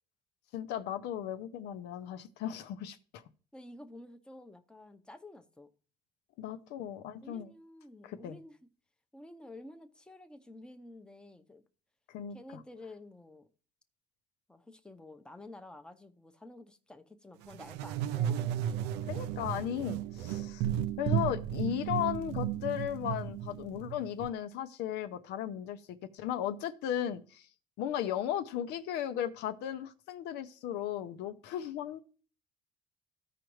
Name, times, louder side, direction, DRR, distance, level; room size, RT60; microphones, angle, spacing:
voice 1, 0.5-3.2 6.4-7.5 8.0-8.4 12.1-12.6 19.1-20.7 21.0-27.5 27.8-32.0, left 10 dB, 90° left, 0.7 m, -36 dB
voice 2, 3.5-5.7 7.2-8.6 9.1-11.6 12.3-13.5 14.5-18.6, left 2 dB, 5° left, 0.7 m, -51 dB
sound 1, 17.5-24.3, right 10 dB, 90° right, 0.5 m, -34 dB
14.5 x 5.0 x 3.1 m
cardioid pair, 110°, 17 cm